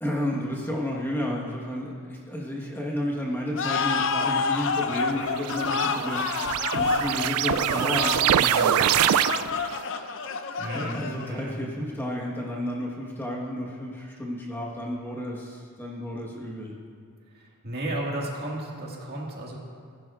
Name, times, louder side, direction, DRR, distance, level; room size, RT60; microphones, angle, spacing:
voice 1, 0.0-9.1 10.7-16.7, left 1 dB, 10° left, -3 dB, 1.3 m, -32 dB
sound 1, 3.6-11.4, left 5 dB, 60° left, 0.6 m, -29 dB
sound 2, 4.8-9.8, right 10 dB, 75° right, 0.3 m, -25 dB
voice 2, 10.6-11.6 17.6-19.6, right 1 dB, 45° right, -2 dB, 1.9 m, -33 dB
19.0 x 11.5 x 2.5 m, 2.1 s
head